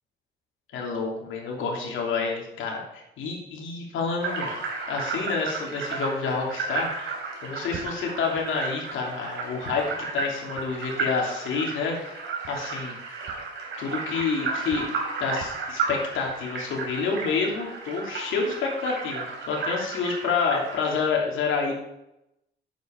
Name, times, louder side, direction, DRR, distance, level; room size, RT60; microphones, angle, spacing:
voice 1, 0.7-4.5 4.9-9.9 10.1-12.9 13.8-14.9 15.2-21.7, left 5 dB, 80° left, -1 dB, 3.0 m, -28 dB
sound 1, 4.2-21.1, right 4 dB, 75° right, 3.5 m, -33 dB
9.4 x 8.0 x 5.2 m, 0.87 s
cardioid pair, 90°, 20 cm